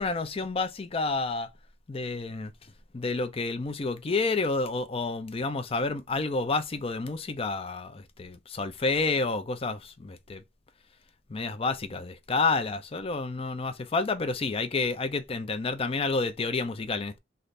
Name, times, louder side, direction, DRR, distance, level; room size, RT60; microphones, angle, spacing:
voice 1, 0.0-1.5 1.9-2.5 2.9-10.4 11.3-17.2, left 3 dB, 30° left, 0.5 m, -29 dB
3.2 x 2.5 x 4.1 m
head